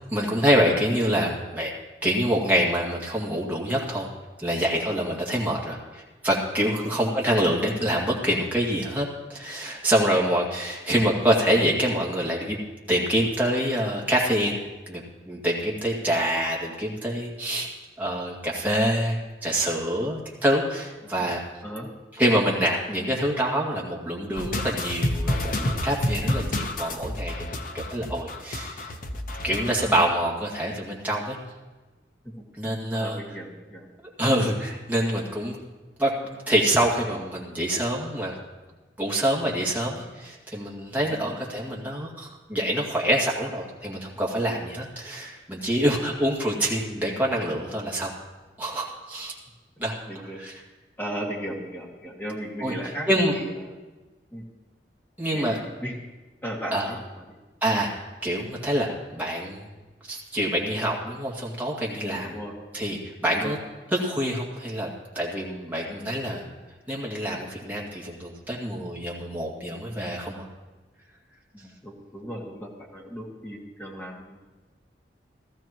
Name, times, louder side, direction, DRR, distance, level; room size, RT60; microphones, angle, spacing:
voice 1, 0.1-1.7 2.0-4.1 4.4-12.6 12.9-14.6 14.9-17.7 18.0-19.1 19.4-21.4 22.2-28.9 29.4-31.4 32.5-33.2 34.2-35.6 36.0-38.4 39.0-48.1 48.6-49.3 49.8-49.9 50.4-50.5 52.6-52.7 53.1-53.3 55.2-55.6 56.7-56.9 57.6-57.9 58.2-59.6 60.1-62.4 62.7-63.6 63.9-66.5 66.9-70.5, equal, 10° right, -4 dB, 2.1 m, -26 dB
voice 2, 21.0-21.3 21.6-21.9 32.2-32.3 32.9-33.9 41.1-41.3 50.1-50.4 51.0-53.8 54.3-54.5 55.3-55.9 56.4-57.2 62.2-62.6 63.3-63.6 71.5-74.4, equal, 10° left, -3 dB, 2.1 m, -36 dB
sound 1, 24.3-30.0, left 1 dB, 50° left, 0.9 m, -29 dB
16.5 x 14.0 x 3.0 m, 1.2 s
head